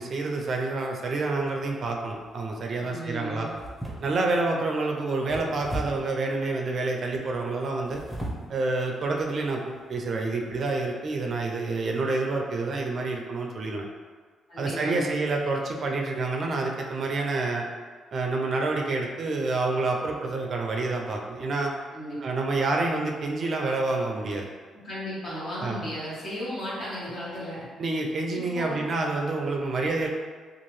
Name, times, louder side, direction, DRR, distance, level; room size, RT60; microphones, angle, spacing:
voice 1, 0.0-3.5 4.0-8.0 8.5-13.9 14.6-17.7 18.1-21.7 22.2-24.5 25.6-25.8 27.8-30.1, right 3 dB, 50° right, 1 dB, 0.4 m, -28 dB
sound 1, 2.1-2.5 3.5-4.4 5.3-6.1 7.7-8.5 9.1-9.2 9.7-9.9, right 1 dB, 5° right, 0.6 m, -36 dB
voice 2, 2.8-3.5 14.5-15.1 21.9-22.2 24.8-27.6 28.3-28.8, equal, 55° left, -8 dB, 1.3 m, -35 dB
2.7 x 2.4 x 3.1 m, 1.5 s
cardioid pair, 90°, 0 cm